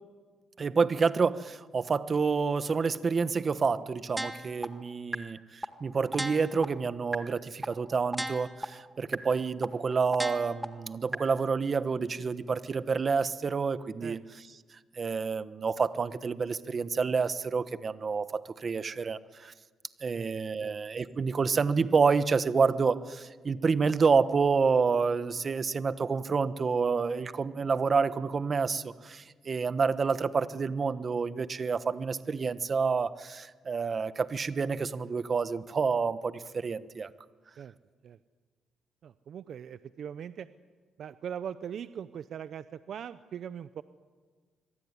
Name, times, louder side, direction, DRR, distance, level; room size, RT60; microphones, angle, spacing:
voice 1, 0.6-14.2 15.0-19.5 20.0-37.1, right 5 dB, 40° right, 13 dB, 1.2 m, -28 dB
sound 1, 4.2-4.6 5.1-5.2 5.6-5.7 6.1-6.6 7.1-7.2 7.6-7.7 8.1-8.6 9.1-9.2 9.6-9.7 10.1-10.6 11.1-11.2, right 1 dB, 5° right, 1.8 m, -33 dB
voice 2, 39.0-40.5 41.0-43.8, right 8 dB, 65° right, 13 dB, 0.7 m, -40 dB
25.0 x 23.0 x 9.8 m, 1.5 s
cardioid pair, 90°, 0 cm